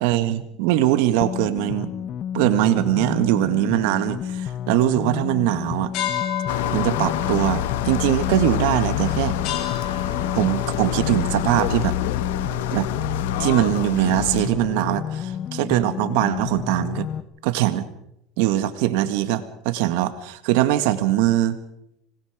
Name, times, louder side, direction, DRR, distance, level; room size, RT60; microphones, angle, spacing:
voice 1, 0.0-1.9 2.3-5.9 6.7-9.3 10.3-12.0 12.7-12.9 13.4-17.1 17.4-17.9 18.4-21.6, right 14 dB, 75° right, 11 dB, 1.8 m, -21 dB
sound 1, 1.2-17.2, left 9 dB, 40° left, 0.9 m, -31 dB
sound 2, 5.9-12.8, left 10 dB, 55° left, 3.4 m, -33 dB
sound 3, 6.5-14.5, left 11 dB, 85° left, 1.2 m, -27 dB
25.5 x 20.0 x 5.1 m, 0.78 s
supercardioid pair, 120°, 0 cm